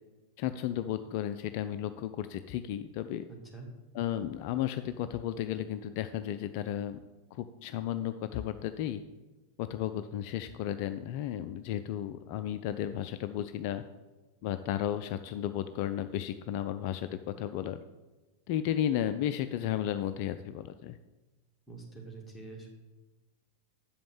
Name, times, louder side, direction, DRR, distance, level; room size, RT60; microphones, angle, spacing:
voice 1, 0.4-3.2 3.9-7.0 7.3-9.0 9.6-13.8 14.4-17.8 18.5-21.0, left 11 dB, 45° left, 10 dB, 0.3 m, -33 dB
voice 2, 3.3-3.7 21.7-22.7, right 3 dB, ahead, -2 dB, 2.0 m, -46 dB
7.1 x 5.2 x 7.2 m, 1.1 s
figure-of-eight pair, 90°, 0 cm